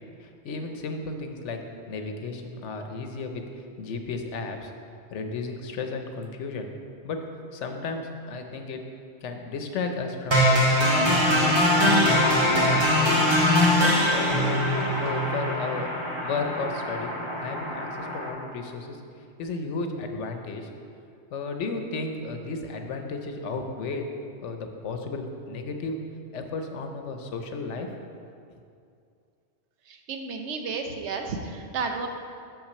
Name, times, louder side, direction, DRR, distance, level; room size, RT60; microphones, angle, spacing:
voice 1, 0.2-4.7 5.1-6.7 7.0-8.8 9.2-13.1 13.4-15.9 16.2-19.0 19.4-20.7 21.3-24.0 24.4-26.0 26.3-27.9, left 3 dB, 80° left, 5 dB, 1.1 m, -34 dB
sound 1, 10.3-18.3, left 1 dB, 25° right, 1.0 m, -22 dB
voice 2, 29.9-32.1, right 4 dB, 75° right, 4 dB, 1.0 m, -32 dB
5.9 x 5.3 x 6.6 m, 2.4 s
omnidirectional pair, 1.2 m